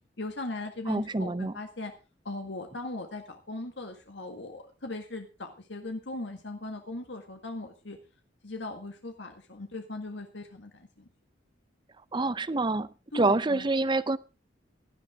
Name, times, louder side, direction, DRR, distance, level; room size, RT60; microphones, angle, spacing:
voice 1, 0.2-1.9 2.2-8.0 8.4-11.1 13.1-13.9, left 2 dB, 70° left, 4 dB, 1.8 m, -39 dB
voice 2, 0.9-1.5 12.1-12.9 13.1-14.2, right 2 dB, 25° right, 17 dB, 0.6 m, -26 dB
16.5 x 12.0 x 3.6 m, 0.31 s
head